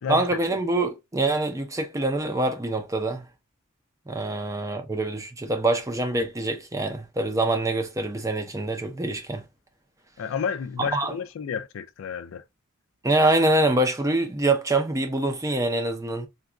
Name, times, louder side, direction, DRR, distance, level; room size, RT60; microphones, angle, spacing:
voice 1, 0.1-3.3 4.1-9.4 10.9-11.1 13.0-16.3, right 2 dB, 15° right, 0.5 m, -25 dB
voice 2, 10.2-12.4, left 7 dB, 65° left, 0.4 m, -30 dB
3.8 x 2.3 x 2.3 m
head